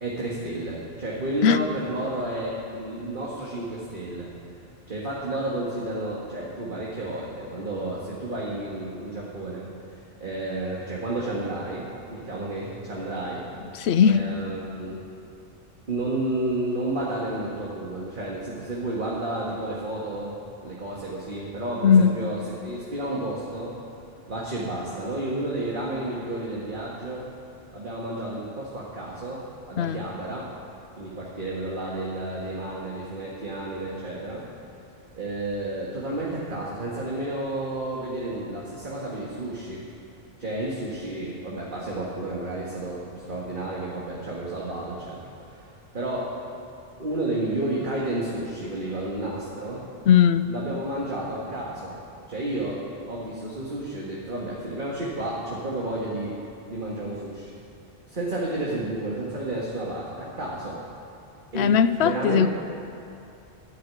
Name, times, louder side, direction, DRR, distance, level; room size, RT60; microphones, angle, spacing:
voice 1, 0.0-4.3 4.9-13.5 14.1-15.0 15.9-23.7 24.3-27.3 27.7-30.5 31.0-34.5 35.1-39.9 40.4-45.7 45.9-46.3 47.0-49.8 50.5-52.0 52.3-56.4 56.7-57.5 58.1-60.8 61.5-61.7 62.0-62.5, right 1 dB, 45° right, -5 dB, 2.0 m, -31 dB
voice 2, 13.7-14.2 21.8-22.2 29.8-30.1 50.1-50.5 61.5-62.5, left 7 dB, 70° left, 13 dB, 0.8 m, -18 dB
11.5 x 9.0 x 9.8 m, 2.7 s
omnidirectional pair, 1.2 m